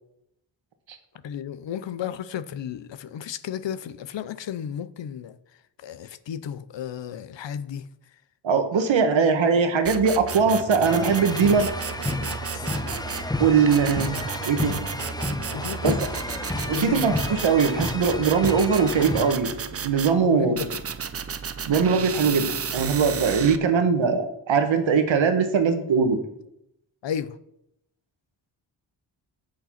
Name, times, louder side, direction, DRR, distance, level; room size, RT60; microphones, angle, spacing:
voice 1, 1.2-5.4 5.8-7.8 12.5-12.7 15.5-16.0 16.7-17.1 20.2-20.8 27.0-27.4, left 9 dB, 75° left, 0.7 m, -33 dB
voice 2, 8.4-11.7 13.4-14.8 15.8-15.9 16.7-20.6 21.7-26.2, right 5 dB, 90° right, 1.3 m, -21 dB
sound 1, 9.8-13.3 13.7-20.1 20.6-23.6, right 7 dB, 35° right, 0.5 m, -33 dB
sound 2, 10.8-19.4, left 2 dB, 10° left, 0.6 m, -31 dB
8.5 x 6.6 x 5.7 m
wide cardioid pair, 110°, 44 cm